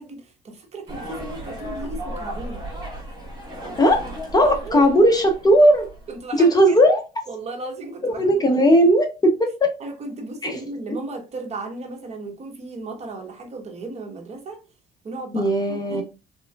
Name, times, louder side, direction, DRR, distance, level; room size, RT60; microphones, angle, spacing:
voice 1, 0.0-2.6 4.4-4.8 6.1-6.8 7.3-8.6 9.8-14.6 15.0-15.5 15.9-16.0, right 2 dB, 40° right, 0.9 m, -35 dB
sound 1, 0.9-6.2, right 1 dB, 25° right, 1.5 m, -35 dB
voice 2, 4.3-5.9 6.4-7.0 8.0-9.7 10.4-10.6 15.3-16.0, equal, 25° left, 0.6 m, -17 dB
3.6 x 3.0 x 2.2 m
cardioid pair, 110°, 17 cm